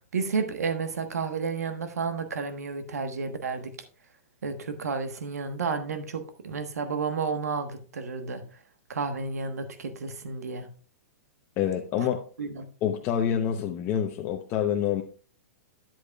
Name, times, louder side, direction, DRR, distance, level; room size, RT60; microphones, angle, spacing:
voice 1, 0.0-3.7 4.4-8.4 8.9-10.7 12.0-12.1 12.4-12.6, right 5 dB, 85° right, 8 dB, 1.2 m, -31 dB
voice 2, 11.6-12.2 12.8-15.0, left 9 dB, 35° left, 2 dB, 0.8 m, -27 dB
10.5 x 8.2 x 2.3 m, 0.40 s
hypercardioid pair, 130°, 8 cm